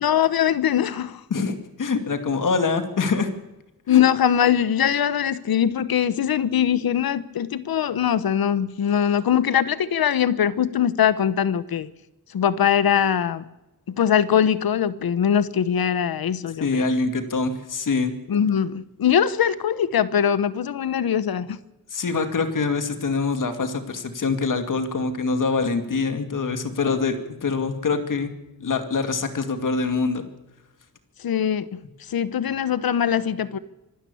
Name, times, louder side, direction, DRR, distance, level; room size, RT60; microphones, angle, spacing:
voice 1, 0.0-1.2 3.9-11.9 12.3-13.4 13.9-16.9 18.3-21.6 31.2-31.8 32.1-33.6, left 9 dB, 85° left, 16 dB, 1.0 m, -22 dB
voice 2, 1.3-3.3 3.9-4.0 16.6-18.1 21.9-28.3 28.6-30.2, left 4 dB, 60° left, 8 dB, 2.4 m, -24 dB
25.5 x 12.5 x 8.5 m, 0.98 s
wide cardioid pair, 175°, 35 cm